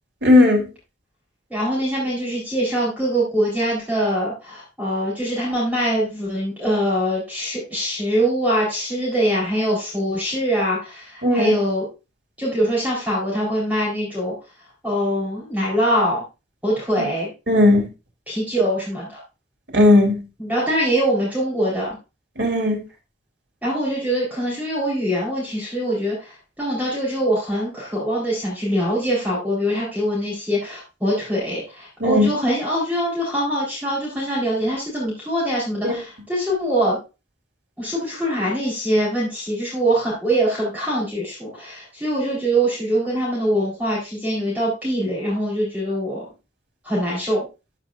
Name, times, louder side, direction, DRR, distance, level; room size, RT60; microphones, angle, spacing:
voice 1, 0.2-0.6 11.2-11.5 17.5-17.9 19.7-20.2 22.4-22.8 32.0-32.3 35.8-36.0, left 2 dB, 75° right, 3.4 m, -15 dB
voice 2, 1.5-11.9 12.4-14.3 14.8-16.2 16.6-17.3 18.3-19.2 20.4-22.0 23.6-37.0 37.8-46.2 46.8-47.5, equal, 10° right, 4.1 m, -23 dB
14.0 x 6.1 x 2.6 m
head